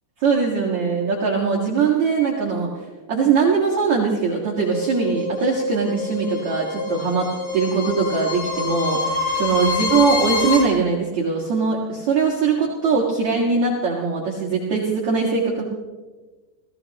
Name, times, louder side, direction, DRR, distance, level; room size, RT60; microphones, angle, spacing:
voice 1, 0.2-2.7 3.1-15.6, right 5 dB, 50° right, -4 dB, 2.6 m, -21 dB
sound 1, 4.6-10.6, left 3 dB, 90° left, 7.8 m, -26 dB
29.0 x 16.0 x 3.0 m, 1.3 s
omnidirectional pair, 5.0 m